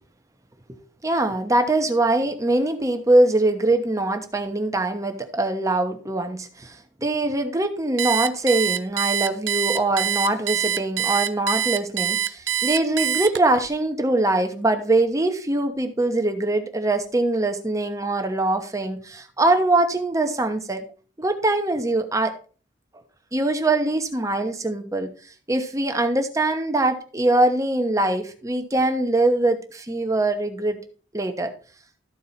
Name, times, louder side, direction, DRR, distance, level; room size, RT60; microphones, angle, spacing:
voice 1, 0.7-20.8 21.2-22.3 23.3-25.1 25.5-30.8 31.1-31.5, right 2 dB, 15° right, 1.1 m, -22 dB
Alarm, 8.0-13.6, right 10 dB, 65° right, 0.5 m, -24 dB
13.0 x 4.6 x 4.2 m
head